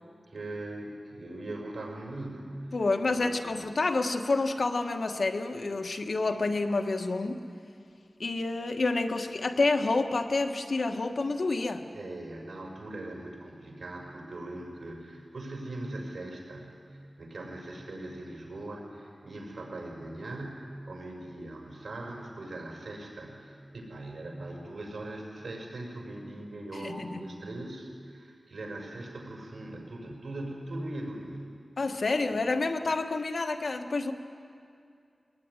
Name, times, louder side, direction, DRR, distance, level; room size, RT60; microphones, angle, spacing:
voice 1, 0.3-2.6 3.1-3.7 11.9-16.8 17.2-31.6, right 1 dB, 70° right, 0 dB, 5.6 m, -40 dB
voice 2, 2.7-7.4 8.2-11.9 26.7-27.3 31.8-34.1, left 3 dB, 70° left, 5 dB, 1.5 m, -28 dB
21.5 x 20.0 x 9.8 m, 2.4 s
wide cardioid pair, 90°, 0 cm